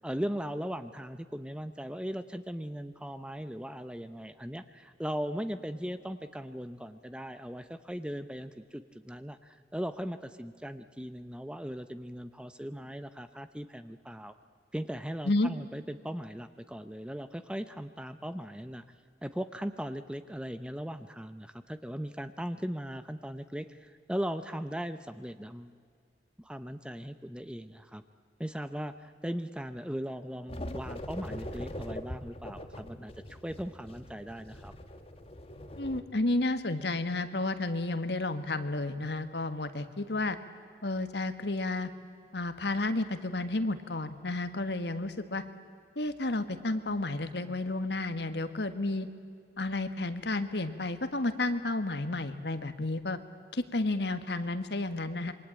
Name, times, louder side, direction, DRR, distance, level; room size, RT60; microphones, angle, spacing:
voice 1, 0.0-14.4 14.7-18.8 19.2-25.7 26.4-28.0 28.4-34.7, equal, 5° right, 11 dB, 0.8 m, -38 dB
sound 1, 30.5-36.0, left 1 dB, 30° left, 1.6 m, -42 dB
voice 2, 35.8-40.4 40.8-41.9 42.3-45.4 45.9-49.1 49.6-53.2 53.5-55.3, left 2 dB, 65° left, 10 dB, 1.6 m, -31 dB
27.0 x 23.5 x 9.0 m, 2.2 s
head